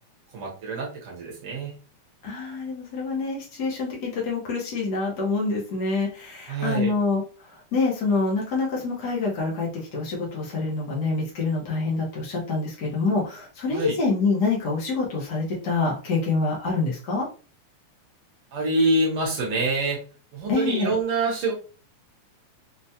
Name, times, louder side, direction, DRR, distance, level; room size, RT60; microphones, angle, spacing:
voice 1, 0.3-1.7 6.5-6.9 13.7-13.9 18.5-20.0 20.3-21.5, right 2 dB, 60° right, -3 dB, 1.6 m, -25 dB
voice 2, 2.2-7.2 7.5-17.3 20.5-21.0, left 3 dB, 80° left, -3 dB, 0.9 m, -26 dB
5.0 x 2.2 x 2.7 m, 0.37 s
omnidirectional pair, 3.4 m